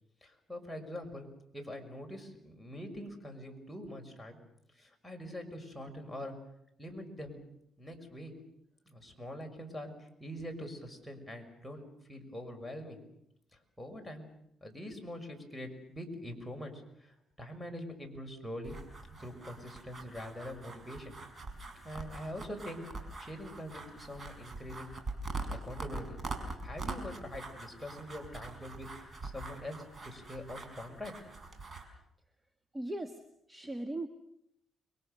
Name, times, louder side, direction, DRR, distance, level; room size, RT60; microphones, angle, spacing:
voice 1, 0.2-1.2 1.5-4.4 4.7-6.3 6.8-7.4 7.8-8.3 8.9-13.0 13.5-14.2 14.6-18.8 19.2-21.1 21.8-24.9 25.5-26.2 26.6-29.8 30.0-31.1, left 1 dB, 5° left, 2 dB, 6.2 m, -44 dB
sound 1, 18.6-31.8, right 3 dB, 35° right, 5.7 m, -44 dB
voice 2, 32.7-33.2 33.5-34.1, right 1 dB, 15° right, 8 dB, 1.6 m, -38 dB
30.0 x 23.0 x 6.9 m, 0.77 s
cardioid pair, 90°, 0 cm